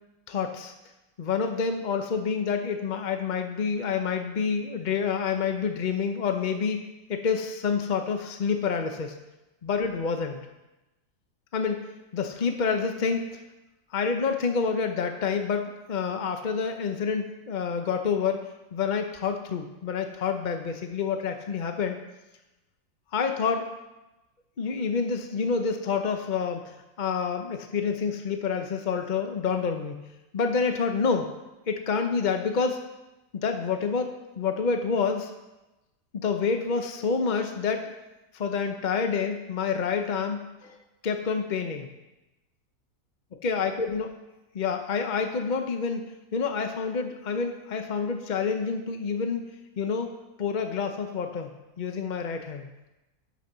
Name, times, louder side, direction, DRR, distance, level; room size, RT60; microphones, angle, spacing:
voice 1, 0.3-0.7 1.2-6.8 7.1-9.1 9.6-10.4 11.5-13.3 13.9-22.0 23.1-23.7 24.6-30.0 30.3-31.3 31.7-32.8 33.4-35.3 36.1-37.8 38.3-40.8 41.0-41.9 43.4-44.1 44.5-49.5 49.8-50.1 50.4-52.7, left 5 dB, 65° left, 6 dB, 0.4 m, -28 dB
11.5 x 5.4 x 6.7 m, 1.0 s
omnidirectional pair, 2.0 m